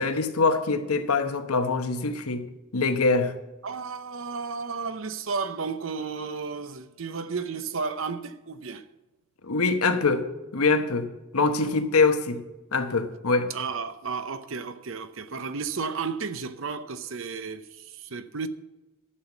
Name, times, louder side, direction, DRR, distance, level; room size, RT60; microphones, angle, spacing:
voice 1, 0.0-2.5 2.7-3.3 9.4-10.3 10.5-11.1 11.3-12.4 12.7-13.5, left 4 dB, 80° left, 1.1 m, -24 dB
voice 2, 3.6-8.9 13.5-18.5, right 5 dB, 60° right, 0.7 m, -33 dB
11.5 x 7.1 x 7.2 m
head